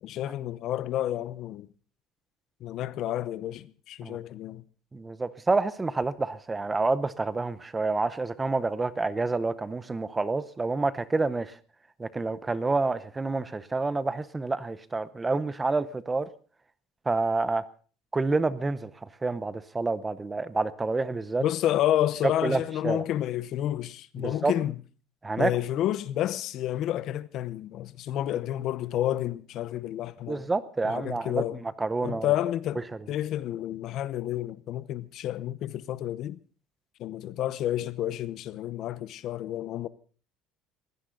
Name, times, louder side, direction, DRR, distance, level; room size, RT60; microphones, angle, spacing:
voice 1, 0.0-1.7 2.6-4.6 21.4-24.7 25.4-30.4 30.8-31.6 32.0-32.8 33.1-36.4 37.0-39.9, left 12 dB, 45° left, 0.8 m, -30 dB
voice 2, 4.9-11.6 12.0-16.3 17.1-17.6 18.1-18.9 19.2-21.4 22.4-23.0 24.2-24.5 25.2-25.5 30.3-32.3, right 3 dB, 10° right, 0.7 m, -28 dB
21.5 x 16.5 x 3.9 m
cardioid pair, 170°, 0 cm